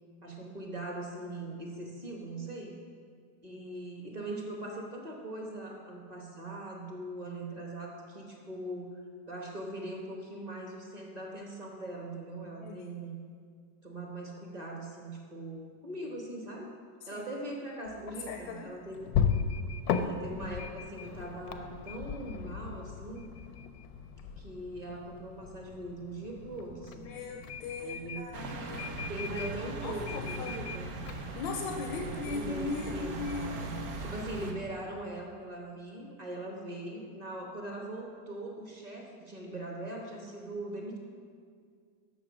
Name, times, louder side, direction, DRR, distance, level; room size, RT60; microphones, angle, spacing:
voice 1, 0.2-2.8 3.4-13.2 13.8-16.7 17.1-19.1 19.9-23.3 24.3-27.1 27.8-28.2 29.1-30.9 32.0-41.0, right 1 dB, 30° right, 0 dB, 0.9 m, -41 dB
voice 2, 12.4-13.0 17.0-17.2 18.3-18.7 27.0-28.9 29.3-30.6 31.3-33.8, left 4 dB, 90° left, 3 dB, 1.3 m, -39 dB
sound 1, 17.9-32.2, left 6 dB, 70° left, 0.9 m, -37 dB
sound 2, 28.3-34.5, right 2 dB, 55° right, 1.0 m, -39 dB
7.1 x 6.6 x 6.1 m, 2.1 s
omnidirectional pair, 1.9 m